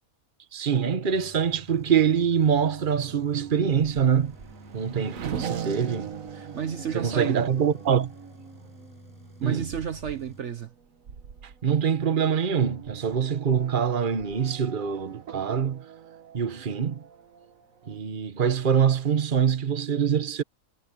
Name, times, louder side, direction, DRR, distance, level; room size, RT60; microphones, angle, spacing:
voice 1, 0.5-4.4 4.7-6.2 6.9-8.1 9.4-9.6 11.6-15.8 16.3-17.0 17.9-20.4, right 7 dB, 40° right, 1.2 m, -24 dB
sound 1, 1.0-10.4 10.7-11.0, left 1 dB, 75° left, 8.0 m, -58 dB
sound 2, 1.1-10.4, equal, 15° left, 6.9 m, -51 dB
Race car auto racing / Accelerating revving vroom, 1.8-18.0, right 8 dB, 80° right, 1.5 m, -42 dB
voice 2, 6.3-7.4 9.4-10.7, right 8 dB, 60° right, 1.3 m, -32 dB
omnidirectional pair, 1.4 m